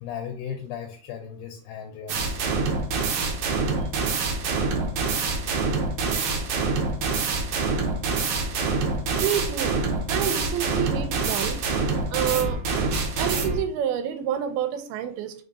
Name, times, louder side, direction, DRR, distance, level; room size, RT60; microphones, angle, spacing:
voice 1, 0.0-2.4, left 8 dB, 80° left, 4 dB, 2.2 m, -36 dB
sound 1, 2.1-13.6, right 4 dB, 75° right, 1.8 m, -26 dB
voice 2, 9.2-9.8 10.1-11.6 12.1-12.6 13.2-15.3, right 9 dB, 90° right, 8 dB, 2.5 m, -28 dB
5.3 x 3.5 x 2.7 m, 0.44 s
omnidirectional pair, 4.4 m